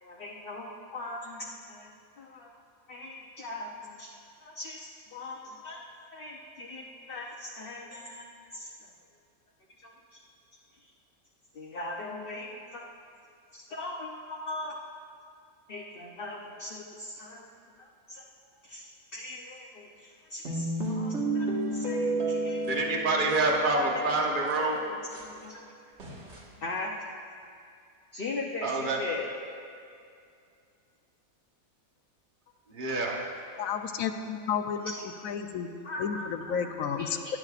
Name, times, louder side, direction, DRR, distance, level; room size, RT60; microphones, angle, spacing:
voice 1, 0.0-1.9 2.2-2.5 2.9-8.2 8.5-8.7 9.8-10.2 10.8-10.9 11.5-12.8 13.5-14.8 15.7-17.5 17.8-18.2 18.6-22.6 23.4-24.1 24.3-25.7 26.6-26.9 28.1-29.3 34.8-34.9 35.4-35.5 35.8-36.7 37.0-37.3, left 2 dB, 50° left, -2 dB, 0.9 m, -40 dB
sound 1, 20.5-24.1 24.5-24.6 25.1-25.2 26.0-26.4, right 2 dB, 55° right, 1.9 m, -31 dB
voice 2, 22.6-24.8 28.6-29.0 32.7-33.2, right 2 dB, 40° right, -1 dB, 1.2 m, -27 dB
voice 3, 33.6-34.9 35.2-35.7 36.0-37.2, left 7 dB, 80° left, 7 dB, 1.1 m, -31 dB
18.0 x 9.9 x 2.4 m, 2.4 s
omnidirectional pair, 1.5 m